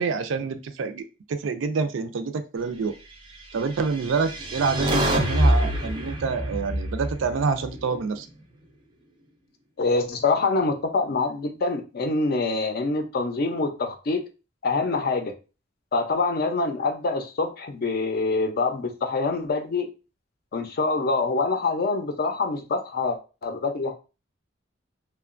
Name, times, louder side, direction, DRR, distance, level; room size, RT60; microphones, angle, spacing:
voice 1, 0.0-2.9 3.5-8.3, right 5 dB, 85° right, 9 dB, 0.4 m, -27 dB
sound 1, 3.8-8.1, right 1 dB, 25° right, 0.5 m, -25 dB
voice 2, 9.8-14.2 14.6-15.3 15.9-19.9 20.5-23.9, left 3 dB, 55° left, 5 dB, 0.5 m, -25 dB
2.9 x 2.2 x 2.4 m, 0.31 s
head